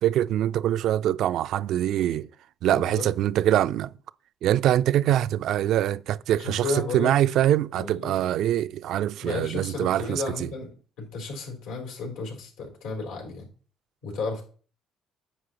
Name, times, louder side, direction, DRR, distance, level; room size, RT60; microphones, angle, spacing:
voice 1, 0.0-2.3 2.6-3.9 4.4-10.5, right 12 dB, 75° right, 0.3 m, -24 dB
voice 2, 2.7-3.1 6.4-7.1 7.8-8.1 9.2-13.5 14.0-14.4, left 3 dB, 85° left, 3.9 m, -33 dB
9.8 x 7.5 x 3.0 m
supercardioid pair, 70°, 0 cm